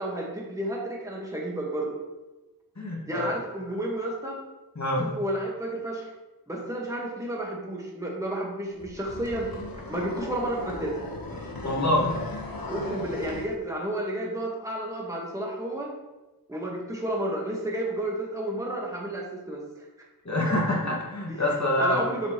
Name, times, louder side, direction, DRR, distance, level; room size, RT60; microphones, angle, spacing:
voice 1, 0.0-2.0 3.1-4.4 5.0-6.1 6.5-9.5 9.9-11.0 12.7-15.9 16.5-19.9 21.3-21.4 21.8-22.3, right 1 dB, 10° right, -3 dB, 1.6 m, -31 dB
voice 2, 2.8-3.3 4.8-5.1 11.6-12.2 20.2-22.0, left 1 dB, 50° left, -3 dB, 2.1 m, -26 dB
sound 1, 8.8-13.5, left 2 dB, 70° left, 1.3 m, -37 dB
7.8 x 5.9 x 3.2 m, 1.1 s
wide cardioid pair, 45°, 37 cm